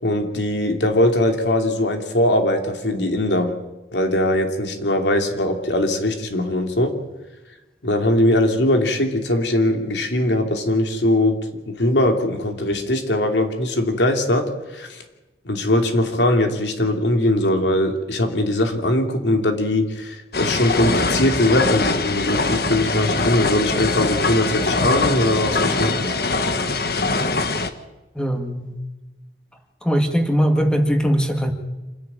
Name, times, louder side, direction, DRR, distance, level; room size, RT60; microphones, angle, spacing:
voice 1, 0.0-3.5 3.9-7.0 7.8-11.4 11.7-15.0 15.4-26.2, left 1 dB, 85° left, 4 dB, 2.9 m, -20 dB
sound 1, 20.3-27.7, left 3 dB, 60° left, 1.4 m, -22 dB
voice 2, 28.2-28.8 29.8-31.5, equal, 5° left, 5 dB, 2.0 m, -20 dB
27.0 x 11.0 x 8.8 m, 1.1 s
head